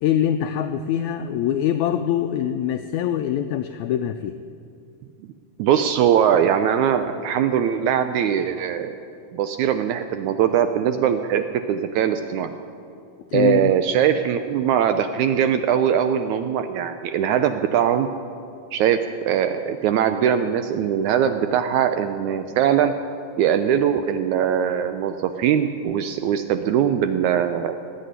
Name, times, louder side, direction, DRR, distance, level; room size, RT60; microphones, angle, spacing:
voice 1, 0.0-4.4 13.3-13.7, left 10 dB, 90° left, 8 dB, 1.6 m, -23 dB
voice 2, 5.6-9.0 9.3-12.5 13.3-18.1 18.7-22.9 23.4-27.7, right 9 dB, 80° right, 9 dB, 1.7 m, -21 dB
18.5 x 8.5 x 9.3 m, 2.5 s
omnidirectional pair, 3.9 m